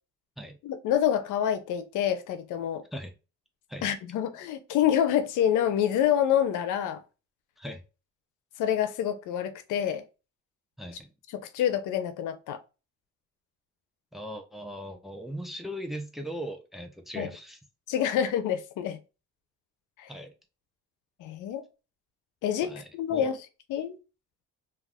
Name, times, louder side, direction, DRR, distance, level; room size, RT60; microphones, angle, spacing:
voice 1, 0.6-2.8 3.8-7.0 8.6-10.0 11.3-12.6 17.1-17.3 17.9-19.0 20.0-20.1 21.2-21.7 22.4-23.4 23.7-24.0, left 10 dB, 85° left, 0.5 m, -27 dB
voice 2, 10.8-11.1 14.1-17.6 20.1-20.3 22.6-23.3, equal, ahead, 0.6 m, -39 dB
2.4 x 2.3 x 3.3 m
cardioid pair, 90°, 30 cm